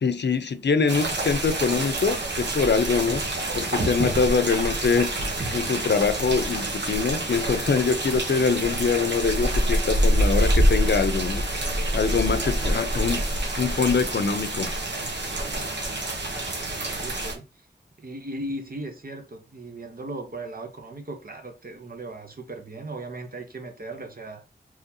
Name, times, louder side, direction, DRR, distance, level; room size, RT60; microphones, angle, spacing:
voice 1, 0.0-3.2 3.6-5.1 5.5-11.4 11.9-13.2 13.6-14.7, left 5 dB, 75° left, 0.5 m, -24 dB
sound 1, 0.9-17.4, right 1 dB, 85° right, 1.0 m, -26 dB
voice 2, 16.3-17.5 18.0-24.6, right 2 dB, 55° right, 0.9 m, -37 dB
3.9 x 3.0 x 2.7 m
wide cardioid pair, 75°, 18 cm